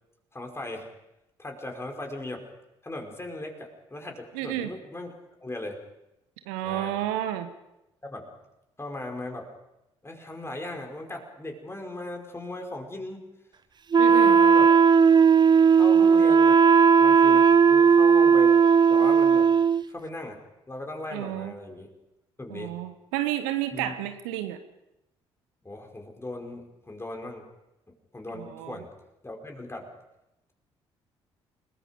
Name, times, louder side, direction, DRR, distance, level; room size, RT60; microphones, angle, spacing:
voice 1, 0.3-0.9 1.4-2.4 2.8-5.8 6.6-7.0 8.0-8.3 8.8-9.5 10.0-13.3 14.0-14.7 15.7-16.6 17.0-18.6 18.9-19.5 19.9-20.4 20.7-21.9 22.4-22.8 23.7-23.9 25.6-27.4 27.9-28.9 29.2-29.9, left 2 dB, 20° left, 2 dB, 5.1 m, -38 dB
voice 2, 4.3-4.7 6.5-7.5 14.0-14.4 21.1-21.5 22.5-24.6 28.3-28.8, right 13 dB, 70° right, 9 dB, 1.2 m, -31 dB
Wind instrument woodwind instrument, 13.9-19.8, right 6 dB, 30° right, 0.7 m, -17 dB
29.5 x 20.0 x 5.2 m, 0.91 s
figure-of-eight pair, 45°, 14 cm